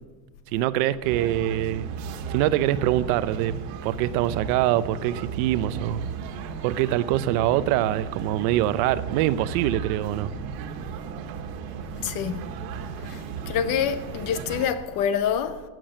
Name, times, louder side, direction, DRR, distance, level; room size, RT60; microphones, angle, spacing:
voice 1, 0.5-1.9 2.3-3.5 3.8-6.0 6.6-10.3, right 13 dB, 65° right, 0.8 m, -24 dB
sound 1, 1.0-14.7, right 7 dB, 90° right, 2.0 m, -35 dB
voice 2, 12.0-12.5 13.0-15.6, left 8 dB, 45° left, 0.9 m, -27 dB
15.5 x 7.8 x 9.0 m
cardioid pair, 180°, 49 cm